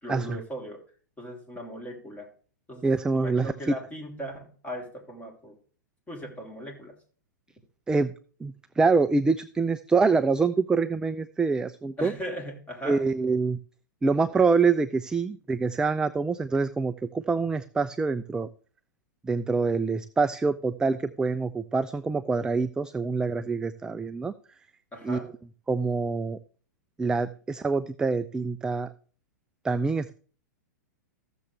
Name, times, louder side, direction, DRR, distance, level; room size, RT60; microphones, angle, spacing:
voice 1, 0.0-0.8 1.2-2.3 2.7-2.9 3.1-5.5 6.1-6.9 12.0-13.0 24.9-25.3, equal, 15° left, 1 dB, 3.2 m, -38 dB
voice 2, 2.8-3.5 7.9-8.1 8.4-12.1 12.9-13.6 14.0-18.5 19.2-24.3 25.0-25.2 25.7-26.4 27.0-28.9 29.6-30.1, right 4 dB, 10° right, 12 dB, 0.3 m, -25 dB
15.0 x 6.9 x 3.3 m, 0.42 s
hypercardioid pair, 105°, 10 cm